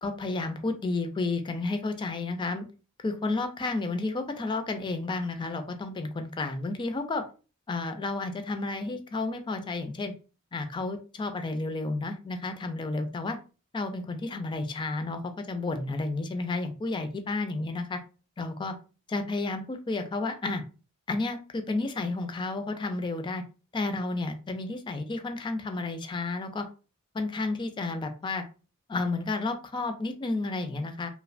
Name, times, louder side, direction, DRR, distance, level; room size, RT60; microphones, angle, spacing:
voice 1, 0.0-2.7 3.0-7.2 7.7-10.1 10.5-13.4 13.7-18.0 18.4-18.7 19.1-20.6 21.1-23.4 23.7-26.7 27.1-28.4 28.9-31.1, left 3 dB, 20° left, 7 dB, 0.3 m, -31 dB
2.8 x 2.1 x 2.4 m, 0.34 s
head